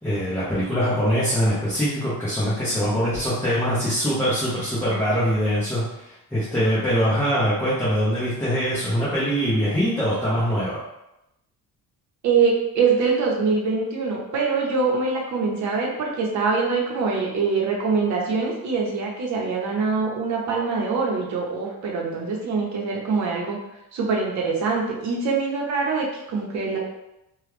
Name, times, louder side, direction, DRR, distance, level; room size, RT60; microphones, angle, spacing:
voice 1, 0.0-10.8, equal, 5° left, -11 dB, 0.7 m, -23 dB
voice 2, 12.2-23.6 23.9-26.8, right 4 dB, 50° right, -2 dB, 0.8 m, -24 dB
3.0 x 2.3 x 3.3 m, 0.88 s
cardioid pair, 165°, 36 cm